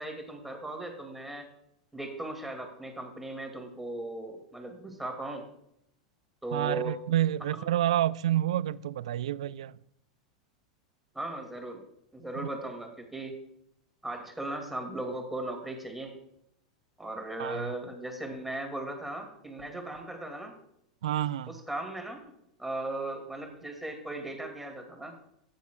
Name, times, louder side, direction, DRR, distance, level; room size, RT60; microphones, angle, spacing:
voice 1, 0.0-1.5 1.9-5.4 6.4-6.9 7.6-7.7 11.1-11.8 12.1-13.4 14.0-16.2 17.0-20.5 21.5-22.2 22.6-25.2, right 2 dB, 5° right, 2.3 m, -37 dB
voice 2, 6.5-9.8 12.4-12.5 17.4-17.7 21.0-21.6, right 12 dB, 70° right, 0.3 m, -29 dB
14.5 x 9.5 x 2.3 m
figure-of-eight pair, 90°, 3 cm